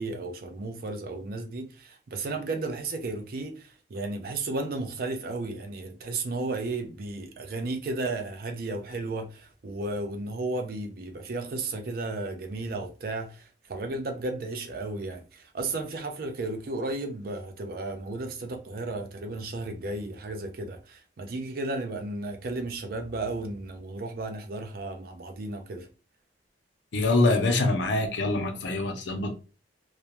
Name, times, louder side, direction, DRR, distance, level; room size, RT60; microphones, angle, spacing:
voice 1, 0.0-25.9, right 2 dB, 55° right, 0.5 m, -34 dB
voice 2, 26.9-29.3, left 2 dB, 90° left, 0.6 m, -24 dB
2.3 x 2.1 x 2.9 m
head